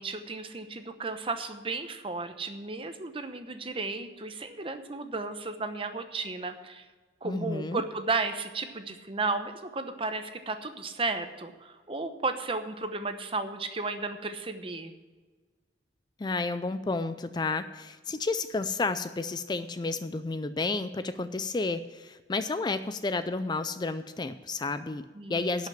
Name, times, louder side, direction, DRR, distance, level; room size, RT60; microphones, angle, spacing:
voice 1, 0.0-6.8 7.2-14.9 25.2-25.7, right 3 dB, 30° right, 8 dB, 0.9 m, -34 dB
voice 2, 7.2-7.8 16.2-25.7, left 3 dB, 25° left, 12 dB, 0.4 m, -31 dB
11.5 x 5.9 x 8.6 m, 1.4 s
head